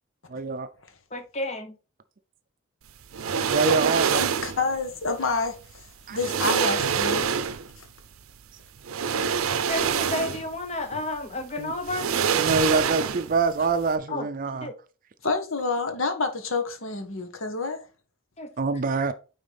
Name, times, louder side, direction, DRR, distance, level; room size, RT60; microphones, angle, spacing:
voice 1, 0.3-0.7 3.5-4.3 6.1-6.2 11.6-11.7 12.4-14.7 18.6-19.1, right 4 dB, 40° right, 0.4 m, -25 dB
voice 2, 1.1-1.7 9.7-12.1 14.1-14.3 14.5-14.7 18.4-18.5, left 2 dB, 30° left, 0.9 m, -31 dB
sound 1, 3.1-4.6 5.7-5.8 6.2-7.8 8.8-10.6 10.9-11.0 11.8-13.5 13.7-13.9, right 7 dB, 90° right, 0.5 m, -25 dB
voice 3, 4.2-7.4 7.8-7.9 15.2-17.8, left 3 dB, 75° left, 1.3 m, -28 dB
9.3 x 4.1 x 3.4 m
head